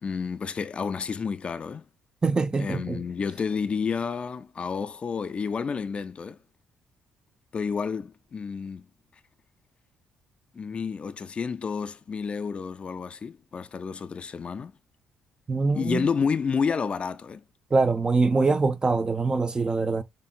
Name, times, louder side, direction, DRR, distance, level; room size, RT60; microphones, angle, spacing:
voice 1, 0.0-1.8 2.6-6.4 7.5-8.9 10.5-14.7 15.7-17.4, left 5 dB, 40° left, 0.5 m, -30 dB
voice 2, 2.2-3.0 15.5-16.1 17.7-20.0, right 3 dB, 25° right, 0.6 m, -24 dB
6.6 x 2.8 x 2.3 m
hypercardioid pair, 50°, 3 cm